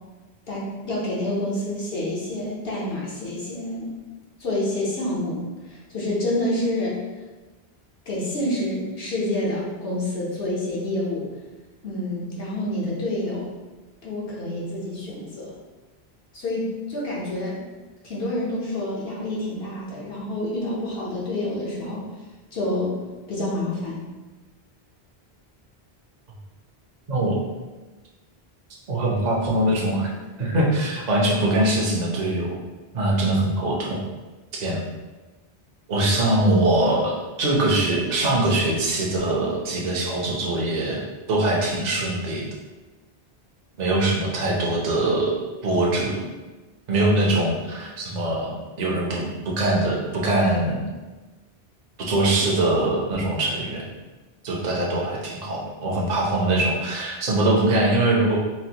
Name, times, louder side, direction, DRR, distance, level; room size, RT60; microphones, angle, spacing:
voice 1, 0.5-3.9 4.4-7.0 8.1-11.3 11.8-13.5 14.0-15.5 16.3-17.6 18.0-22.0 22.5-23.0 23.3-24.0, left 1 dB, 70° left, -7 dB, 1.0 m, -28 dB
voice 2, 27.1-27.4 28.9-30.1 30.4-32.6 32.9-34.0 34.5-34.8 35.9-42.5 43.8-45.3 45.6-46.2 46.9-50.8 52.0-53.9 54.4-58.4, right 1 dB, 50° right, -3 dB, 0.7 m, -22 dB
4.1 x 2.0 x 2.8 m, 1.2 s
omnidirectional pair, 1.0 m